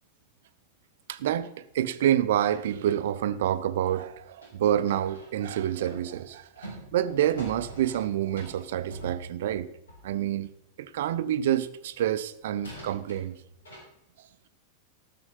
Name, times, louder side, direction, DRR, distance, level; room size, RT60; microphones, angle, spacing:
voice 1, 1.1-9.7 10.0-10.5 10.8-13.4, right 11 dB, 55° right, 0.6 m, -28 dB
sound 1, 2.5-5.4 5.8-10.2 11.9-12.0 12.5-13.8, right 1 dB, 70° left, 4.3 m, -46 dB
14.0 x 6.7 x 5.6 m
figure-of-eight pair, 90°, 0 cm